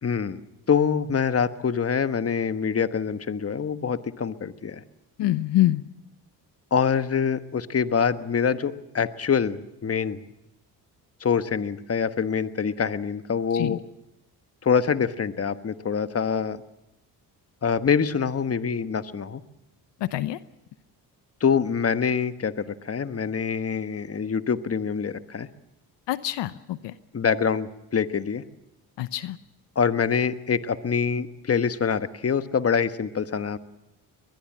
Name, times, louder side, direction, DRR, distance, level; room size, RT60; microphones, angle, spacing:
voice 1, 0.0-0.4 0.7-4.8 6.7-10.2 11.2-13.8 14.6-16.6 17.6-19.4 21.4-25.5 27.1-28.4 29.7-33.6, left 6 dB, 35° left, 11 dB, 1.3 m, -25 dB
voice 2, 5.2-5.8 13.5-13.8 20.0-20.4 26.1-26.9 29.0-29.4, left 15 dB, 75° left, 14 dB, 0.9 m, -25 dB
22.5 x 20.5 x 7.5 m, 0.87 s
supercardioid pair, 70°, 43 cm